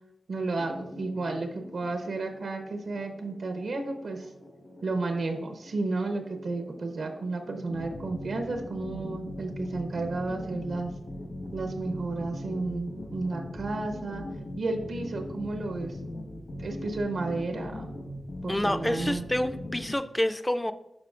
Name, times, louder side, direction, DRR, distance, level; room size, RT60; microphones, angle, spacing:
voice 1, 0.3-4.3 4.8-10.9 11.5-14.2 14.6-16.0 16.6-17.9 18.4-19.2, right 3 dB, 70° right, 5 dB, 0.8 m, -32 dB
sound 1, 0.6-20.0, left 1 dB, 65° left, 1.2 m, -40 dB
voice 2, 18.5-20.7, left 1 dB, 10° left, 11 dB, 0.4 m, -28 dB
11.5 x 4.2 x 2.4 m, 0.92 s
wide cardioid pair, 100°, 0 cm